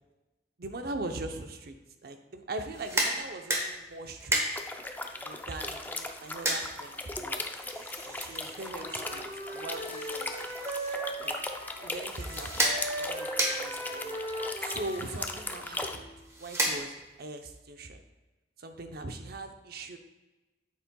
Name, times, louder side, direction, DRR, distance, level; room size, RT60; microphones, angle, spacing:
voice 1, 0.6-1.7 2.0-4.4 5.2-7.4 8.0-10.3 11.2-11.4 11.8-14.2 14.6-16.1 16.4-18.0 18.6-20.0, right 2 dB, 60° right, 6 dB, 0.7 m, -41 dB
sound 1, 2.6-17.3, right 1 dB, 15° right, 1.1 m, -35 dB
sound 2, 4.6-16.0, left 2 dB, 10° left, 0.4 m, -38 dB
Wind instrument woodwind instrument, 8.3-11.9 12.2-16.1, right 1 dB, 35° right, 1.7 m, -39 dB
8.9 x 7.5 x 2.3 m, 1.1 s
head